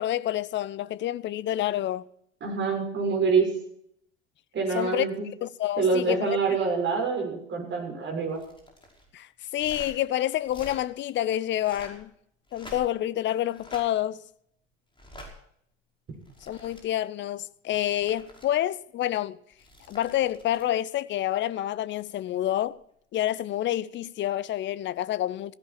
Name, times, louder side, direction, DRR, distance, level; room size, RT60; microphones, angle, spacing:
voice 1, 0.0-2.0 4.7-5.1 5.4-6.4 9.1-12.1 12.5-14.2 16.4-19.4 19.9-22.8 23.1-25.5, left 12 dB, 30° left, 0.7 m, -28 dB
voice 2, 2.4-3.5 4.5-5.2 5.8-8.4, right 4 dB, 30° right, 6.9 m, -26 dB
sound 1, 8.3-9.0 9.5-9.9 10.4-10.8 11.5-12.0 12.5-13.1 13.5-13.8 14.9-15.3 16.1-16.8 17.7-18.5 19.5-20.7 22.5-22.7, left 1 dB, 15° left, 5.6 m, -47 dB
16.5 x 16.0 x 4.5 m
figure-of-eight pair, 75°, 38 cm